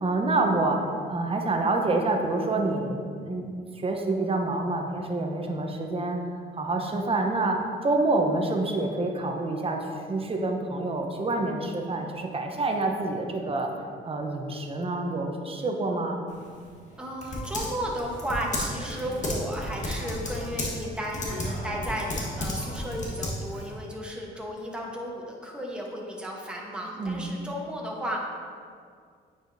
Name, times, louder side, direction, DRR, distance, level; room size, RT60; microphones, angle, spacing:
voice 1, 0.0-6.2 6.5-13.7 14.0-16.2 27.0-27.4, right 2 dB, 30° right, 2 dB, 0.9 m, -27 dB
Typing, 16.3-23.7, left 1 dB, 40° left, 1.4 m, -33 dB
voice 2, 17.0-28.2, equal, 5° right, -2 dB, 1.1 m, -34 dB
8.7 x 4.9 x 2.7 m, 2.1 s
cardioid pair, 90°, 20 cm